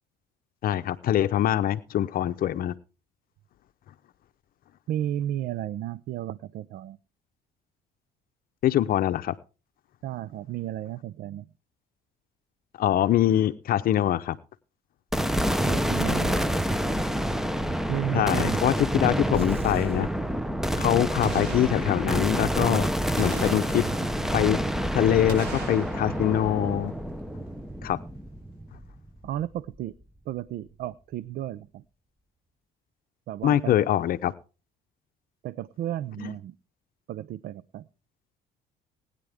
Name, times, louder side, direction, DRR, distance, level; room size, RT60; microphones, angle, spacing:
voice 1, 0.6-2.7 8.6-9.3 12.8-14.4 18.1-20.1 20.8-22.9 23.2-23.9 24.3-24.6 24.9-26.9 27.8-28.0 33.4-34.3 36.2-36.3, left 11 dB, 60° left, 12 dB, 0.7 m, -24 dB
voice 2, 4.9-7.0 10.0-11.5 15.6-16.5 17.9-18.6 29.2-29.9 30.3-31.8 33.3-33.8 35.4-36.6 37.1-37.9, right 12 dB, 65° right, 19 dB, 0.5 m, -33 dB
sound 1, 15.1-29.4, equal, ahead, 0.8 m, -28 dB
sound 2, 19.3-21.2, right 2 dB, 35° right, 1.4 m, -40 dB
Boom, 21.2-22.7 23.2-24.8 25.3-27.5 27.9-28.0, right 4 dB, 90° right, 5.9 m, -40 dB
20.5 x 9.9 x 3.5 m, 0.34 s
cardioid pair, 110°, 17 cm